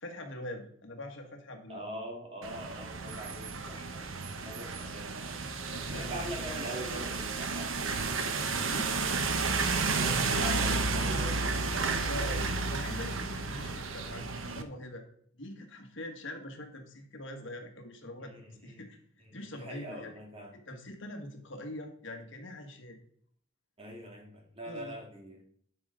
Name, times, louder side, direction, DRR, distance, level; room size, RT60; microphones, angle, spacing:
voice 1, 0.0-1.8 5.7-6.3 8.6-9.0 12.0-15.0 15.4-18.3 18.6-19.0 19.3-20.1 20.7-23.0 24.7-25.0, left 1 dB, 65° left, 4 dB, 1.6 m, -43 dB
voice 2, 1.7-4.0 4.3-5.5 5.9-8.1 9.9-12.4 18.2-18.8 19.2-20.5 23.8-25.4, equal, 30° right, 1 dB, 1.9 m, -43 dB
sound 1, 2.4-14.6, right 4 dB, 80° right, 0.9 m, -32 dB
11.5 x 5.5 x 3.8 m, 0.62 s
head